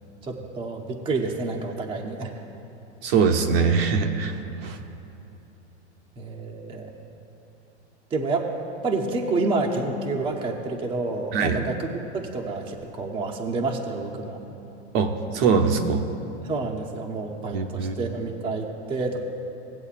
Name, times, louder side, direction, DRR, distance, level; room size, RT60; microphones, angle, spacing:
voice 1, 0.2-2.3 6.2-6.9 8.1-8.5 8.8-14.4 16.4-19.2, right 3 dB, 15° right, 0 dB, 0.7 m, -29 dB
voice 2, 3.0-4.4 4.6-4.8 11.3-11.6 14.9-16.1 17.5-18.1, right 5 dB, 55° right, 5 dB, 0.8 m, -22 dB
17.5 x 7.9 x 2.4 m, 3.0 s
supercardioid pair, 130°, 35 cm